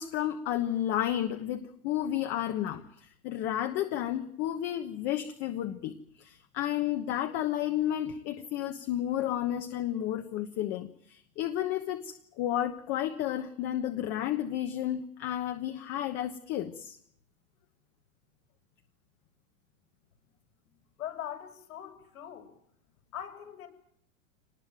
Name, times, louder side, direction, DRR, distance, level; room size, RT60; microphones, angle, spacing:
voice 1, 0.0-17.0, left 12 dB, 25° left, 7 dB, 1.2 m, -32 dB
voice 2, 21.0-22.5 23.1-23.7, left 10 dB, 80° left, 4 dB, 7.3 m, -41 dB
25.5 x 19.5 x 9.2 m, 0.70 s
supercardioid pair, 170°, 42 cm